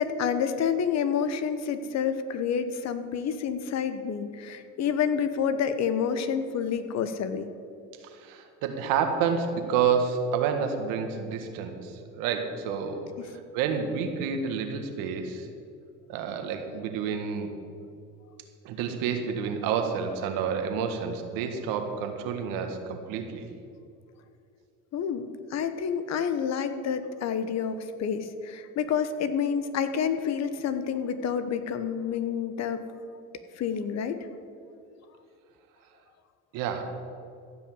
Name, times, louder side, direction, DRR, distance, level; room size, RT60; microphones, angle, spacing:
voice 1, 0.0-7.5 13.2-13.3 24.9-32.8 33.5-34.2, left 7 dB, 50° left, 10 dB, 1.1 m, -28 dB
voice 2, 8.0-13.0 13.3-15.5 16.1-17.5 18.6-23.5 36.5-36.8, right 6 dB, 75° right, 6 dB, 1.7 m, -29 dB
15.5 x 5.7 x 8.5 m, 2.5 s
supercardioid pair, 90°, 33 cm